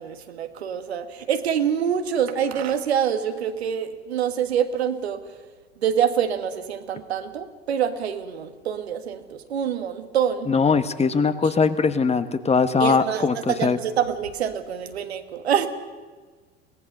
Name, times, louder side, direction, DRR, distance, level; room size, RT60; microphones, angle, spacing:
voice 1, 0.0-5.2 5.8-10.5 11.4-11.5 12.8-15.7, right 8 dB, 80° right, 8 dB, 1.5 m, -26 dB
voice 2, 10.5-13.8, left 5 dB, 20° left, 11 dB, 1.3 m, -21 dB
23.5 x 18.0 x 6.7 m, 1.4 s
hypercardioid pair, 80°, 32 cm